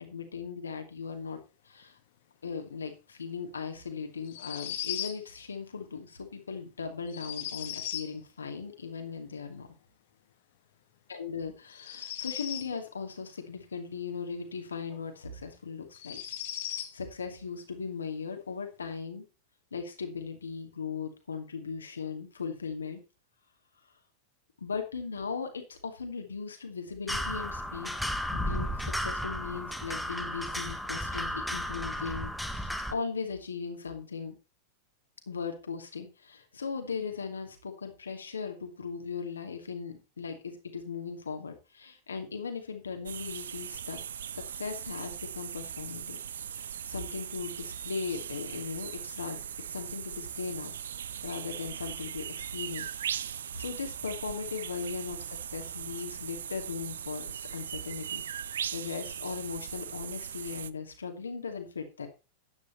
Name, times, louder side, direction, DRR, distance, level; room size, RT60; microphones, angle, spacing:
voice 1, 0.0-1.4 1.7-1.9 2.4-9.7 11.1-16.2 16.6-19.2 19.7-23.0 24.6-27.9 28.3-34.4 35.3-44.0 44.3-46.2 46.5-49.4 49.7-50.7 51.2-52.9 53.5-55.2 55.5-62.1, left 5 dB, 70° left, 5 dB, 2.6 m, -38 dB
sound 1, 4.2-5.2 7.1-8.1 11.7-12.7 14.9-15.0 15.9-16.9, left 11 dB, 55° left, 1.7 m, -37 dB
sound 2, 27.1-32.9, equal, ahead, 1.3 m, -34 dB
sound 3, 43.1-60.7, right 9 dB, 65° right, 0.5 m, -39 dB
11.0 x 9.2 x 4.1 m, 0.30 s
figure-of-eight pair, 90°, 0 cm